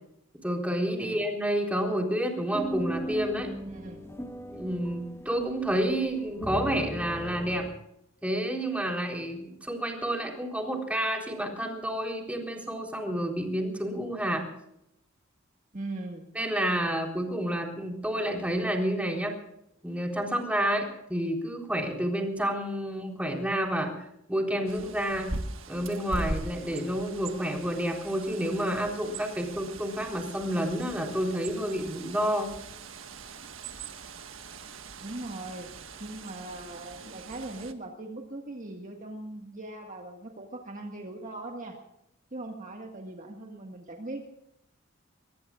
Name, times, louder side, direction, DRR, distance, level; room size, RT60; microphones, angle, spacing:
voice 1, 0.4-3.5 4.5-7.7 8.2-14.5 16.3-19.4 19.8-23.9 24.3-25.3 25.7-32.5, equal, 5° right, 1 dB, 3.9 m, -29 dB
sound 1, 2.5-7.7, right 1 dB, 15° left, 1.8 m, -38 dB
voice 2, 3.7-4.0 15.7-16.2 35.0-35.7 36.0-41.8 42.3-44.2, right 2 dB, 40° right, 2 dB, 1.8 m, -40 dB
Bird, 24.7-37.7, right 3 dB, 75° right, 1.6 m, -41 dB
24.0 x 22.5 x 2.5 m, 0.79 s
head